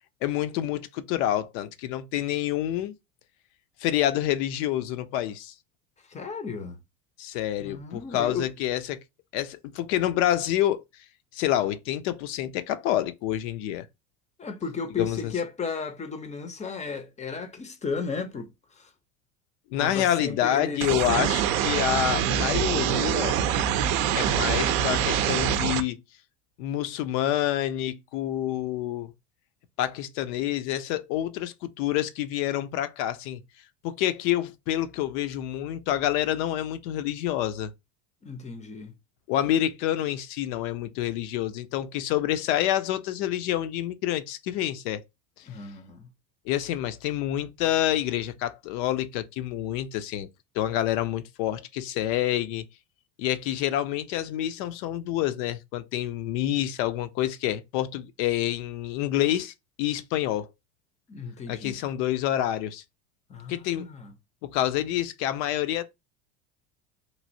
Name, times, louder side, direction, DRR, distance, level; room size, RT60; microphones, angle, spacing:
voice 1, 0.2-2.9 3.8-5.5 7.2-9.0 9.3-10.8 11.3-13.9 15.0-15.3 19.7-23.4 24.1-26.0 26.6-29.1 29.8-33.4 33.8-37.7 39.3-45.0 46.5-50.3 50.5-52.6 53.2-60.5 61.5-62.8 63.5-63.9 64.4-65.8, left 12 dB, 60° left, 0.6 m, -27 dB
voice 2, 6.0-6.8 7.6-8.5 14.4-18.9 19.8-20.9 38.2-38.9 45.4-46.1 61.1-61.8 63.3-64.2, left 5 dB, 15° left, 0.6 m, -34 dB
sound 1, 20.8-25.8, right 9 dB, 60° right, 0.5 m, -25 dB
3.1 x 2.6 x 2.6 m
hypercardioid pair, 90°, 41 cm